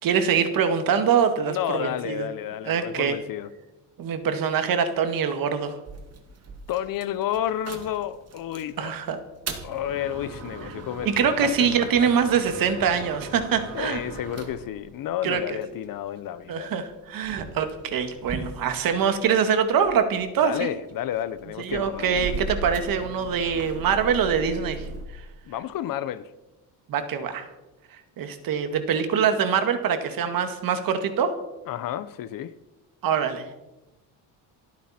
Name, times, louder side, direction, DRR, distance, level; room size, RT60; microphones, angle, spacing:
voice 1, 0.0-2.3 2.7-3.2 4.0-5.7 8.8-9.2 11.1-14.0 15.2-15.4 16.5-20.7 21.6-24.8 25.1-25.2 26.9-27.5 28.2-31.3 33.0-33.5, right 7 dB, 55° right, 8 dB, 2.0 m, -24 dB
voice 2, 1.4-3.5 6.7-8.9 9.6-11.7 12.0-12.1 13.7-16.7 20.4-22.2 25.5-26.3 31.7-32.5, left 11 dB, 55° left, 15 dB, 0.9 m, -31 dB
sound 1, 5.9-8.7 9.2-16.0 16.7-19.3 19.7-25.0, right 3 dB, 35° right, 2.1 m, -38 dB
28.0 x 9.4 x 4.3 m, 1.0 s
cardioid pair, 140°, 41 cm